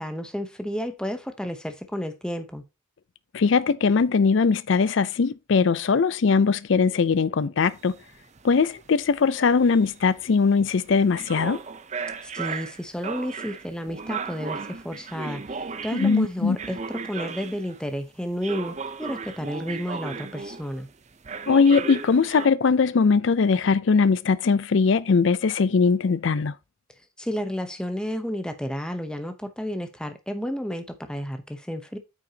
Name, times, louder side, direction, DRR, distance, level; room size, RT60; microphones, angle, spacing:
voice 1, 0.0-2.6 12.2-20.9 27.2-32.0, equal, 5° left, 0.8 m, -31 dB
voice 2, 3.3-8.0 8.4-11.6 15.9-16.6 21.5-26.5, left 5 dB, 65° left, 0.4 m, -20 dB
sound 1, 7.7-17.9 18.4-20.9 21.2-22.5, right 5 dB, 35° right, 0.6 m, -36 dB
8.8 x 6.1 x 2.8 m
head